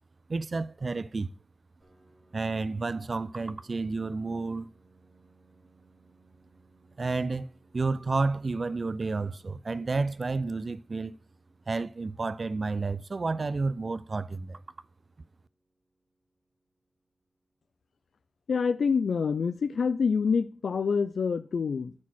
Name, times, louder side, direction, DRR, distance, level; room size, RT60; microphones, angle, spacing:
voice 1, 0.3-1.3 2.3-4.7 7.0-7.5 7.7-11.2 11.7-14.6, right 3 dB, 45° right, 0.3 m, -30 dB
Piano, 1.8-17.2, right 2 dB, 20° right, 3.3 m, -67 dB
voice 2, 18.5-21.9, left 5 dB, 85° left, 0.3 m, -26 dB
11.0 x 4.4 x 6.1 m
wide cardioid pair, 90°, 0 cm